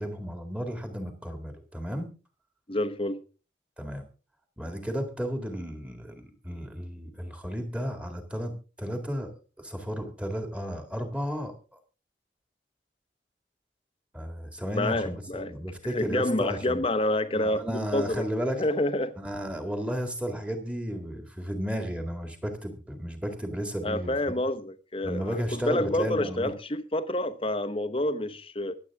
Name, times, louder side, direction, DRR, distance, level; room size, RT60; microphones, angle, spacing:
voice 1, 0.0-2.1 3.8-4.0 4.6-9.3 9.6-11.5 14.1-16.8 17.3-18.7 19.2-24.4 25.0-26.5, equal, 5° right, 2.0 m, -33 dB
voice 2, 2.7-3.2 14.7-15.5 15.9-18.3 18.6-19.2 23.8-25.4 25.6-28.8, left 1 dB, 30° left, 0.9 m, -28 dB
24.0 x 8.3 x 3.6 m
head